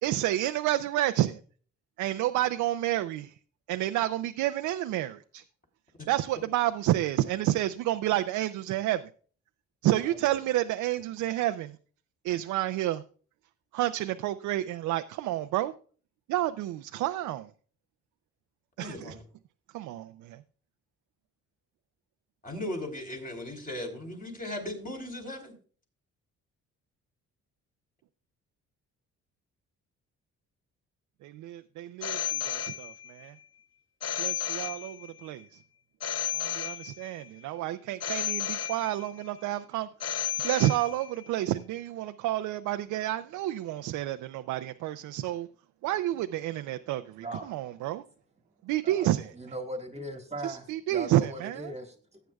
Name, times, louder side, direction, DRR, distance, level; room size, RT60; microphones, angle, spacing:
voice 1, 0.0-1.4 2.0-3.3 3.7-5.4 6.1-9.1 9.8-11.8 12.2-13.0 13.7-15.7 16.3-17.5 18.8-19.1 19.7-20.4 31.2-33.4 34.2-35.6 36.3-45.5 45.8-48.0 48.6-49.3 50.4-51.7, right 14 dB, 90° right, 0.5 m, -30 dB
voice 2, 18.8-19.2 22.4-25.5, left 1 dB, 30° left, 3.8 m, -37 dB
Telephone, 32.0-33.3 34.0-35.3 36.0-37.3 38.0-39.3 40.0-41.3, left 10 dB, 55° left, 0.8 m, -33 dB
voice 3, 47.2-47.5 48.8-52.2, right 1 dB, 20° right, 1.6 m, -39 dB
15.0 x 9.1 x 2.3 m
cardioid pair, 90°, 30 cm